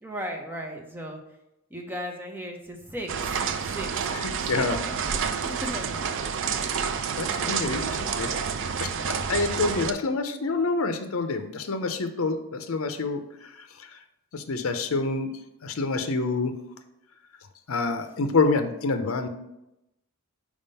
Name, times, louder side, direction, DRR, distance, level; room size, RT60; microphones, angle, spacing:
voice 1, 0.0-1.2 1.7-4.0 4.5-5.2 5.4-6.0 6.5-6.9 7.3-8.1, equal, 10° right, 2 dB, 0.8 m, -37 dB
sound 1, 3.1-9.9, right 6 dB, 60° right, 0.4 m, -29 dB
voice 2, 4.2-4.8 7.2-8.3 8.8-13.9 14.3-15.3 15.6-16.5 17.7-19.3, left 3 dB, 70° left, 8 dB, 0.6 m, -27 dB
4.9 x 3.6 x 5.4 m, 0.87 s
head